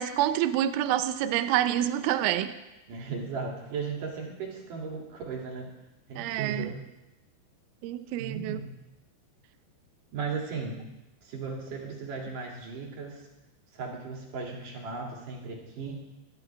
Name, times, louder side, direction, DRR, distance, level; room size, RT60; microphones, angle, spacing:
voice 1, 0.0-2.5 6.2-6.7 7.8-8.6, right 12 dB, 80° right, 11 dB, 3.2 m, -27 dB
voice 2, 2.9-5.7 6.1-6.8 8.2-8.7 10.1-10.8 11.2-13.3 13.7-15.9, right 4 dB, 50° right, -1 dB, 3.7 m, -36 dB
22.0 x 13.0 x 3.6 m, 0.98 s
omnidirectional pair, 5.7 m